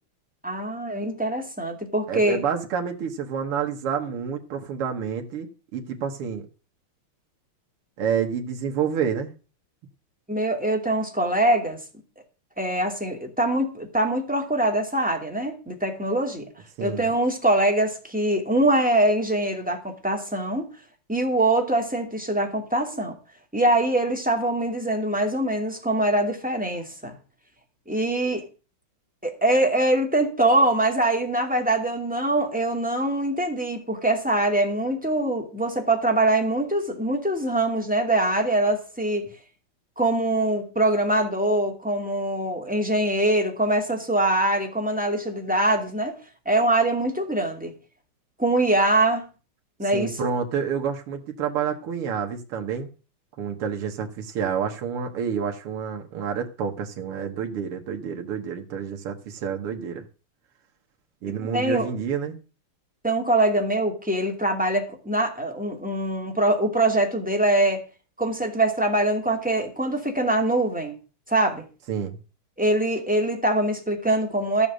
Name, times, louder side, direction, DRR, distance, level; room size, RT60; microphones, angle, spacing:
voice 1, 0.4-2.4 10.3-11.8 12.6-16.5 16.8-20.7 21.1-23.1 23.5-27.2 27.9-28.4 29.2-39.3 40.0-46.2 46.5-47.7 48.4-49.3 49.8-50.3 61.4-61.9 63.0-67.8 68.2-70.9 71.3-71.6 72.6-74.7, right 1 dB, 5° right, 2 dB, 2.3 m, -23 dB
voice 2, 2.1-5.5 5.7-6.5 8.0-9.3 16.8-17.1 49.9-52.9 53.4-60.0 61.2-62.4 71.9-72.2, right 7 dB, 85° right, 3 dB, 2.2 m, -28 dB
13.5 x 7.1 x 6.3 m, 0.35 s
omnidirectional pair, 2.4 m